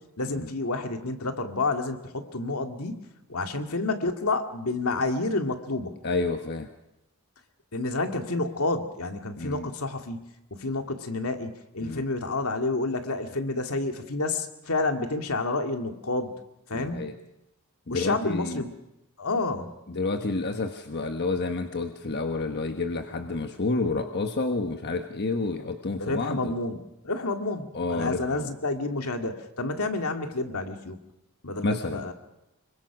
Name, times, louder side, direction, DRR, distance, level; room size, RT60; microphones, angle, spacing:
voice 1, 0.2-5.9 7.7-16.3 16.7-17.1 17.9-18.7 19.2-19.8 26.0-31.0 31.4-32.1, left 2 dB, 75° left, 5 dB, 2.2 m, -29 dB
voice 2, 6.0-6.7 9.4-9.7 11.8-12.0 16.7-17.1 17.9-18.7 19.9-26.5 27.7-28.5 31.6-32.0, left 3 dB, 50° left, 5 dB, 1.2 m, -29 dB
26.0 x 23.0 x 6.1 m, 0.91 s
head